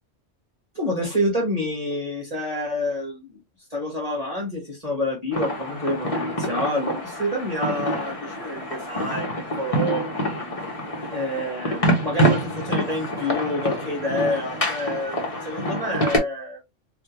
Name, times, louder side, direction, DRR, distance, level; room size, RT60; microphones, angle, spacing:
voice 1, 0.7-3.4 3.7-10.4 11.1-16.6, left 1 dB, 30° right, 1.5 m, -28 dB
sound 1, 5.3-16.2, equal, 30° left, 1.0 m, -26 dB
3.4 x 2.6 x 2.8 m
omnidirectional pair, 1.3 m